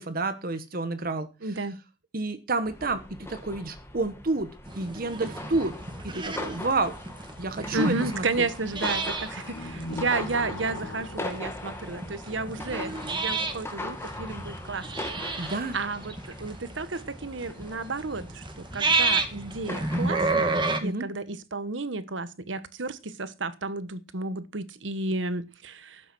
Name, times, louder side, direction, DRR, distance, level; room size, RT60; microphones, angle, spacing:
voice 1, 0.0-1.6 2.1-4.5 4.8-5.8 6.0-6.9 7.4-8.5 15.4-15.8 20.8-21.0, right 3 dB, 50° right, 1.2 m, -29 dB
voice 2, 1.4-1.8 7.7-14.9 15.2-26.0, right 3 dB, 70° right, 1.2 m, -32 dB
sound 1, 2.6-20.7, left 1 dB, 15° left, 2.1 m, -40 dB
sound 2, 4.7-20.8, right 3 dB, 25° right, 1.9 m, -32 dB
sound 3, 9.4-12.6, left 1 dB, 70° left, 1.7 m, -41 dB
12.5 x 9.0 x 6.1 m
head